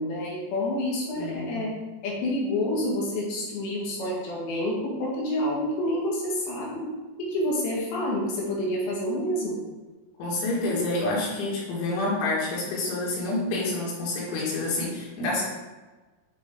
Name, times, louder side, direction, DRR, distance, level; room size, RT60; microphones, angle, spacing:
voice 1, 0.0-1.7 2.0-6.9 7.2-9.6, left 1 dB, 65° left, -4 dB, 3.0 m, -28 dB
voice 2, 1.2-1.6 10.2-15.4, left 2 dB, 80° left, -5 dB, 4.1 m, -28 dB
8.4 x 3.9 x 3.6 m, 1.2 s
omnidirectional pair, 5.4 m